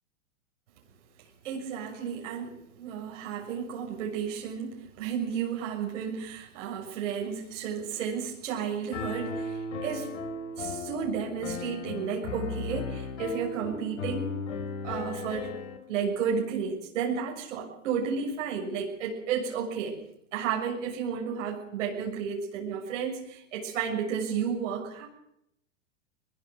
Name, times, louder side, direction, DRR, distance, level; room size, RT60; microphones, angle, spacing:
voice 1, 1.2-10.1 10.6-14.3 14.8-15.5 15.9-20.0 20.3-25.1, right 7 dB, 75° right, -2 dB, 6.9 m, -32 dB
Piano, 8.9-15.8, left 3 dB, 90° left, 4.6 m, -36 dB
22.5 x 21.5 x 6.3 m, 0.78 s
hypercardioid pair, 130°, 38 cm